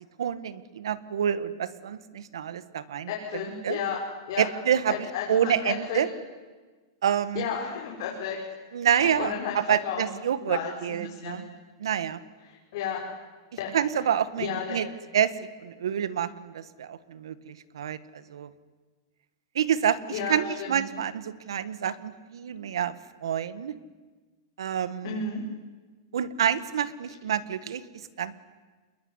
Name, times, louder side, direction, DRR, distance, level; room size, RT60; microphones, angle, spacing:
voice 1, 0.2-3.1 3.6-3.8 4.4-6.1 7.0-7.4 8.7-11.4 11.8-12.2 13.7-14.9 15.1-15.3 15.6-18.5 19.5-20.0 20.3-22.9 23.2-23.8 24.6-25.2 26.1-27.8 28.2-28.3, right 9 dB, 85° right, 15 dB, 1.7 m, -28 dB
voice 2, 3.1-4.0 4.3-4.5 4.9-6.1 7.3-8.4 8.9-10.1 10.4-11.4 12.5-13.0 13.6-13.7 14.4-14.8 20.1-20.8 25.0-25.4, left 7 dB, 55° left, -3 dB, 5.5 m, -33 dB
28.0 x 22.0 x 9.8 m, 1.3 s
supercardioid pair, 155°, 2 cm